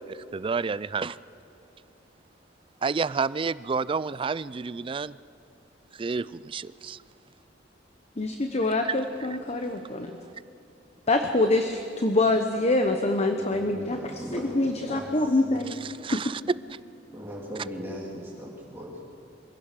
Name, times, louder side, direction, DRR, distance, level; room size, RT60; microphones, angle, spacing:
voice 1, 0.3-1.1 2.8-5.1 6.0-7.0 8.8-8.9 16.0-16.4, right 5 dB, 30° right, 18 dB, 0.4 m, -29 dB
voice 2, 8.2-10.1 11.1-14.0 14.3-15.8 16.1-16.2, left 2 dB, 35° left, 5 dB, 1.0 m, -25 dB
voice 3, 13.4-14.6 14.9-15.7 17.1-19.0, equal, 15° right, -4 dB, 2.5 m, -39 dB
24.5 x 16.5 x 6.6 m, 3.0 s
head